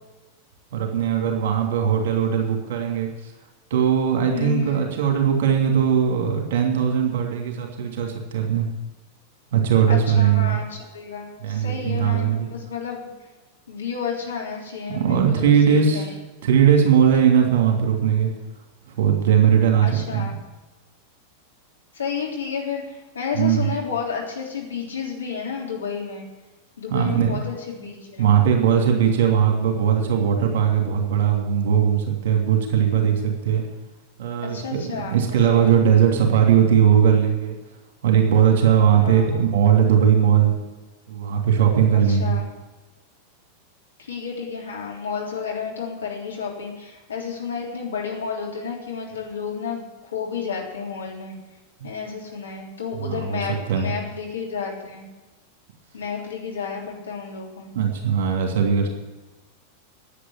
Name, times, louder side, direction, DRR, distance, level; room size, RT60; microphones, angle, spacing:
voice 1, 0.7-3.3 3.7-8.7 9.5-10.6 11.4-12.5 14.9-16.1 16.4-18.3 18.9-20.3 23.3-23.8 26.9-27.4 28.2-33.6 34.2-37.6 38.0-40.6 41.1-42.3 53.0-53.4 53.7-53.9 57.7-58.9, right 8 dB, 55° right, 2 dB, 2.9 m, -19 dB
voice 2, 4.3-4.8 9.9-13.0 13.7-16.1 19.8-20.3 21.9-26.3 26.8-28.2 34.4-35.1 35.5-35.7 39.0-39.4 42.1-42.5 44.1-51.4 51.8-55.1 55.9-57.7, left 6 dB, 70° left, -1 dB, 3.4 m, -31 dB
9.9 x 9.3 x 9.7 m, 1.2 s
figure-of-eight pair, 90°, 0 cm